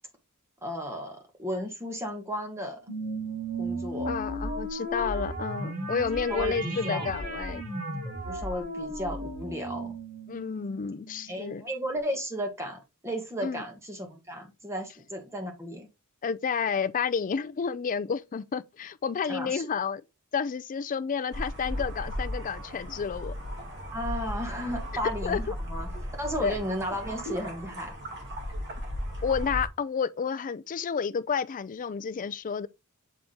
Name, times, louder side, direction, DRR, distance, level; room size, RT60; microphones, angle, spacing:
voice 1, 0.6-2.8 3.6-4.1 6.3-7.1 8.0-9.9 11.3-15.9 19.3-19.7 23.9-25.9 26.2-27.9, equal, 10° right, 1.4 m, -34 dB
sound 1, 2.9-11.6, right 1 dB, 80° right, 3.3 m, -35 dB
voice 2, 4.1-7.6 10.3-11.6 13.4-13.6 16.2-20.0 20.3-23.3 25.2-25.4 26.4-26.6 29.2-32.7, left 6 dB, 35° left, 0.4 m, -30 dB
sound 2, 21.3-29.7, equal, 55° right, 2.2 m, -36 dB
7.4 x 3.6 x 3.8 m
head